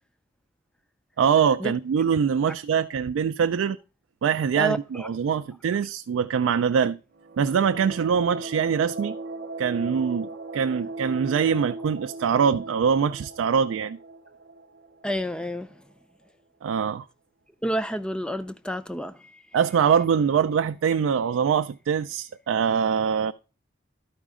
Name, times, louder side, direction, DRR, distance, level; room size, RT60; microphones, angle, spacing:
voice 1, 1.2-3.8 4.2-7.0 7.4-9.2 9.6-14.0 16.6-17.0 19.5-23.3, right 7 dB, 85° right, 0.3 m, -23 dB
voice 2, 4.6-5.1 15.0-15.7 17.6-19.4, right 1 dB, 5° left, 0.4 m, -29 dB
sound 1, 7.1-15.7, right 3 dB, 55° right, 0.8 m, -38 dB
12.0 x 5.0 x 3.6 m
head